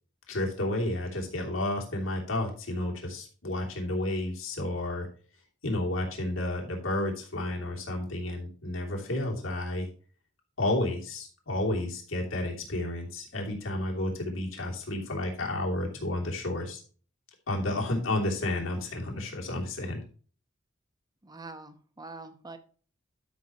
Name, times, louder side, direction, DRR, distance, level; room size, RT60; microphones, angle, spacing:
voice 1, 0.3-5.1 5.6-9.9 10.6-16.8 17.5-20.0, left 1 dB, 85° left, -1 dB, 3.0 m, -31 dB
voice 2, 21.2-22.6, right 3 dB, 20° right, 9 dB, 1.0 m, -44 dB
12.5 x 6.0 x 3.0 m, 0.40 s
head